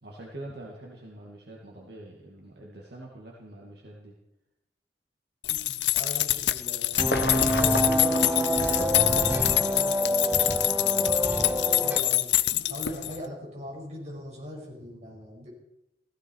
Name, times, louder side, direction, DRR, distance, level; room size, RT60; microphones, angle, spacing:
voice 1, 0.0-4.1 9.4-12.0 12.7-12.8, right 1 dB, 65° right, -3 dB, 2.3 m, -45 dB
sound 1, 5.4-13.2, left 15 dB, 80° left, 0.7 m, -26 dB
voice 2, 5.5-8.8 11.7-12.3 12.7-15.5, equal, 35° right, -3 dB, 6.1 m, -40 dB
sound 2, 7.0-10.1 11.2-11.3, left 2 dB, 60° left, 1.1 m, -34 dB
sound 3, 7.0-12.0, equal, 10° right, 0.9 m, -27 dB
16.0 x 15.5 x 4.7 m, 0.92 s
head